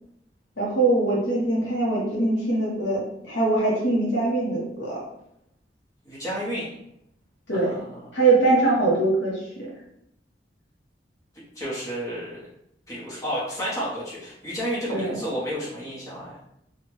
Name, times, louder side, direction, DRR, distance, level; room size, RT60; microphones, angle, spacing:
voice 1, 0.6-5.0 7.5-7.7 8.1-9.4 14.9-15.2, right 2 dB, 85° left, -4 dB, 1.1 m, -22 dB
voice 2, 6.0-6.7 7.5-8.1 11.6-12.4 12.9-16.4, equal, 20° left, -8 dB, 1.1 m, -31 dB
2.9 x 2.4 x 3.1 m, 0.78 s
head